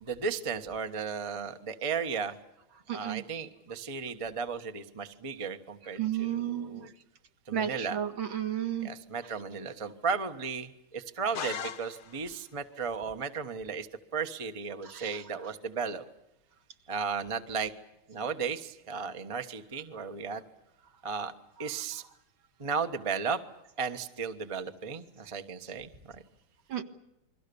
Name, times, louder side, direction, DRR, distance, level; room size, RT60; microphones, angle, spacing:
voice 1, 0.0-2.4 2.9-6.9 7.5-8.0 8.8-13.9 14.1-16.0 16.9-17.7 18.1-20.4 21.0-21.3 21.6-22.0 22.6-23.4 23.8-26.2, right 5 dB, 20° right, 7 dB, 0.9 m, -35 dB
voice 2, 2.9-3.2 6.0-6.9 7.5-8.9 9.2-9.3 14.8-15.2 26.7-26.8, right 10 dB, 65° right, 4 dB, 2.4 m, -33 dB
sound 1, 11.3-12.4, left 8 dB, 75° left, 2.1 m, -38 dB
29.0 x 22.5 x 7.0 m, 0.91 s
omnidirectional pair, 2.4 m